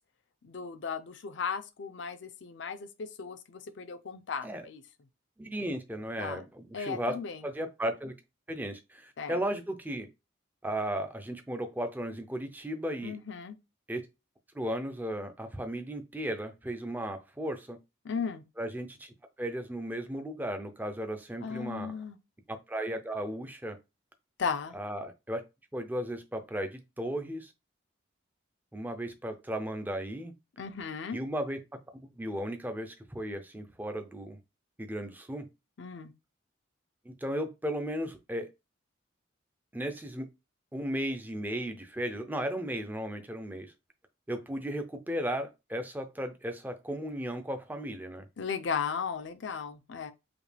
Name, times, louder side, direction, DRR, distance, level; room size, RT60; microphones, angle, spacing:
voice 1, 0.4-4.8 6.2-6.4 6.7-7.4 9.2-9.4 13.0-13.6 18.0-18.4 21.4-22.2 24.4-24.8 30.6-31.2 35.8-36.1 48.4-50.1, left 6 dB, 70° left, 0.5 m, -36 dB
voice 2, 5.4-7.2 7.4-8.1 8.5-10.1 10.6-13.2 13.9-14.0 14.5-17.8 18.6-19.1 19.4-22.0 22.5-23.8 24.7-25.4 25.7-27.5 28.7-30.3 31.1-31.6 31.9-34.4 34.8-35.5 37.1-38.5 39.7-40.3 40.7-43.7 44.3-48.3, right 1 dB, 10° right, 0.4 m, -35 dB
5.0 x 2.2 x 3.3 m
head